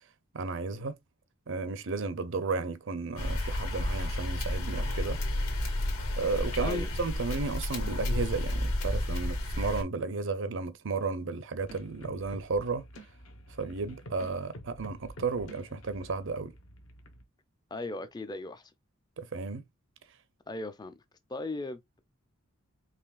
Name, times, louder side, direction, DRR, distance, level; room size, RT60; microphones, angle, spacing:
voice 1, 0.3-0.9 1.5-5.2 6.2-12.8 13.6-16.5 19.2-19.6, right 4 dB, 60° right, 0.6 m, -33 dB
sound 1, 3.2-9.8, left 1 dB, 90° left, 1.8 m, -31 dB
voice 2, 6.6-6.9 17.7-18.7 20.5-20.9 21.3-22.0, left 2 dB, 20° left, 0.5 m, -37 dB
sound 2, 11.6-17.2, equal, 70° left, 1.0 m, -49 dB
4.9 x 3.2 x 2.3 m
head